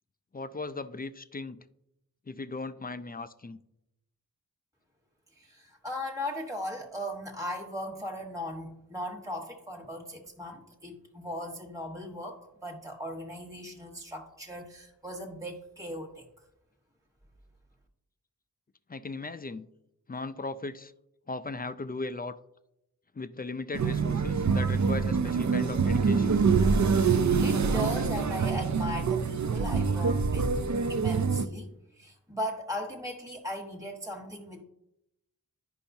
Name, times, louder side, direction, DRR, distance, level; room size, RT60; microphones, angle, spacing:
voice 1, 0.3-1.6 2.3-3.6 18.9-19.7 20.1-20.9 21.3-22.4 23.2-26.4, left 3 dB, 25° left, 12 dB, 0.3 m, -37 dB
voice 2, 5.4-16.2 27.1-30.6 30.9-34.6, equal, 10° right, 0 dB, 1.3 m, -38 dB
sound 1, 23.7-31.5, right 5 dB, 50° right, 0.5 m, -25 dB
10.0 x 5.5 x 2.7 m, 0.84 s
wide cardioid pair, 45°, 37 cm